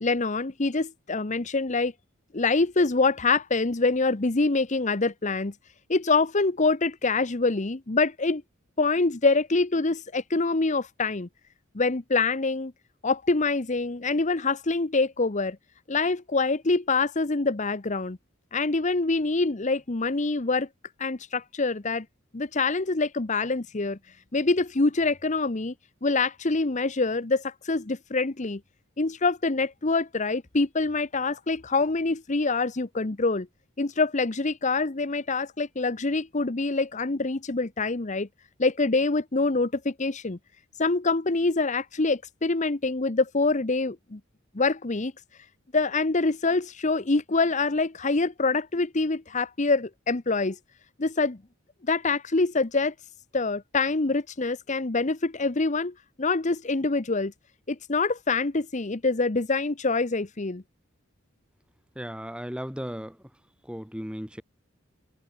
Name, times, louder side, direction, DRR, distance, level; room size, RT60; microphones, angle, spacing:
voice 1, 0.0-1.9 2.3-5.5 5.9-8.4 8.8-11.3 11.7-12.7 13.0-15.6 15.9-18.2 18.5-20.7 21.0-22.0 22.3-24.0 24.3-25.7 26.0-28.6 29.0-33.5 33.8-38.3 38.6-40.4 40.8-44.2 44.5-45.1 45.7-50.6 51.0-51.4 51.9-52.9 53.3-57.3 57.7-60.6, left 3 dB, 35° left, 0.9 m, -25 dB
voice 2, 62.0-63.2 63.7-64.4, equal, 5° right, 2.6 m, -35 dB
head